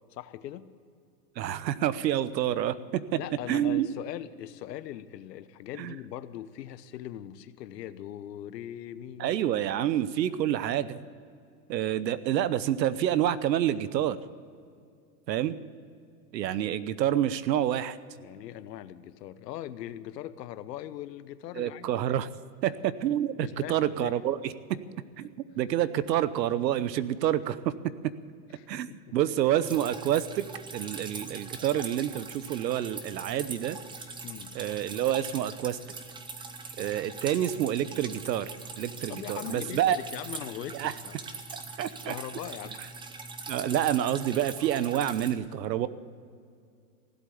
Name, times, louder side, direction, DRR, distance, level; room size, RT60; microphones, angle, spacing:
voice 1, 0.1-0.7 3.1-9.3 18.2-22.1 23.4-24.2 28.5-29.2 31.6-31.8 34.2-34.6 39.1-41.2 42.1-42.8, left 12 dB, 75° left, 14 dB, 1.0 m, -40 dB
voice 2, 1.4-3.2 3.5-3.9 5.8-5.9 9.2-11.0 11.7-14.2 15.3-15.6 16.3-18.0 21.5-22.3 22.6-24.8 25.2-25.3 25.6-27.7 28.0-28.1 28.7-30.5 30.7-33.8 34.5-35.8 36.8-40.0 40.7-40.9 41.8-42.1 43.5-45.9, right 11 dB, 85° right, 16 dB, 1.0 m, -28 dB
Drip, 29.6-45.3, right 4 dB, 10° right, 0.7 m, -42 dB
16.5 x 8.2 x 9.8 m, 2.3 s
supercardioid pair, 135°, 49 cm